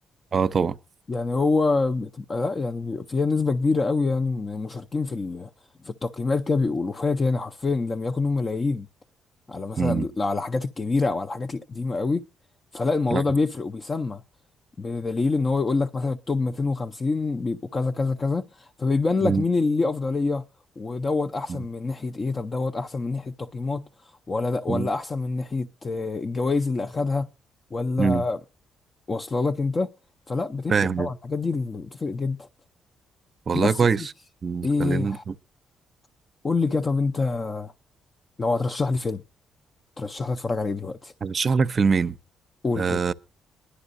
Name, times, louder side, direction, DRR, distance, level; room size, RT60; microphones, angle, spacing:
voice 1, 0.3-0.8 9.8-10.1 13.1-13.2 19.2-19.4 21.5-21.6 24.7-24.9 28.0-28.2 30.7-31.1 33.5-34.1 34.4-35.3 41.2-42.2 42.8-43.1, right 5 dB, 40° right, 0.6 m, -23 dB
voice 2, 1.1-5.5 5.8-8.9 9.5-12.2 12.7-14.2 14.8-20.4 20.8-27.3 27.7-28.4 29.1-29.9 30.3-32.4 33.5-33.8 34.6-35.2 36.4-37.7 38.4-39.2 40.0-41.1 42.6-43.0, left 3 dB, 30° left, 0.6 m, -26 dB
20.5 x 11.5 x 2.6 m
cardioid pair, 90°, 0 cm